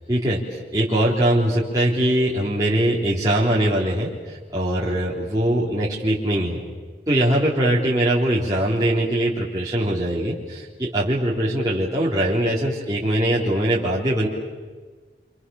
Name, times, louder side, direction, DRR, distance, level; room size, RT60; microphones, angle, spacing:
voice 1, 0.1-6.6 7.1-14.3, right 1 dB, 20° right, -7 dB, 3.7 m, -22 dB
28.0 x 27.5 x 7.1 m, 1.4 s
head